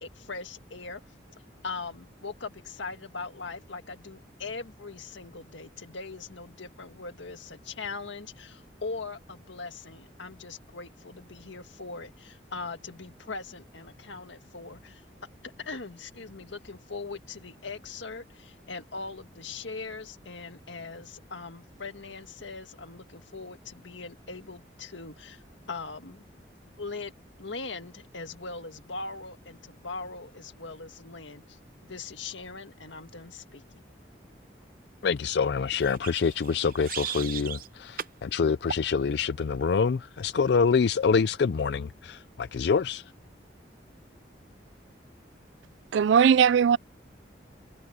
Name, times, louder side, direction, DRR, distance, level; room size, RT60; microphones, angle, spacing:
voice 1, 0.0-1.0 1.6-15.0 15.4-25.4 25.7-26.3 26.8-27.1 27.4-33.8, left 4 dB, 85° left, 1.8 m, -40 dB
voice 2, 35.0-43.0, left 5 dB, 65° left, 0.4 m, -26 dB
sound 1, 35.8-37.7 38.0-38.2 38.7-38.9, right 8 dB, 50° right, 0.7 m, -37 dB
voice 3, 45.9-46.8, right 7 dB, 80° right, 0.3 m, -19 dB
head